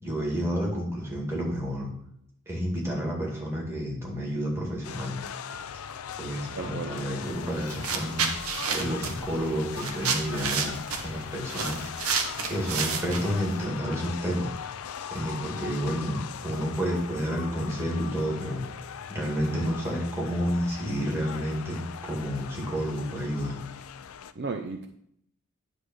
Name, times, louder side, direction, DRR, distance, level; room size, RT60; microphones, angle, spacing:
voice 1, 0.0-1.9 2.5-5.2 6.2-8.3 8.7-10.7 11.0-11.9 12.5-14.5 15.1-23.6, equal, 10° right, -3 dB, 2.0 m, -30 dB
sound 1, 4.8-24.3, left 8 dB, 70° left, 0.4 m, -40 dB
voice 2, 6.5-7.0 24.3-24.9, right 4 dB, 50° right, 6 dB, 0.5 m, -34 dB
sound 2, 7.2-7.4 7.7-13.6, right 5 dB, 70° right, 1.0 m, -30 dB
9.9 x 3.3 x 6.1 m, 0.69 s
head